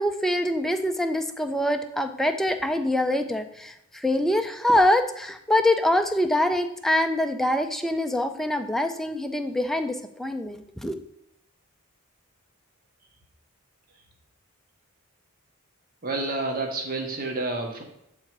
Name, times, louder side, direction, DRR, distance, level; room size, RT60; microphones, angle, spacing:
voice 1, 0.0-11.0, left 1 dB, ahead, 6 dB, 0.4 m, -24 dB
voice 2, 16.0-17.8, right 2 dB, 40° right, 2 dB, 1.1 m, -29 dB
8.5 x 3.8 x 4.6 m, 0.79 s
head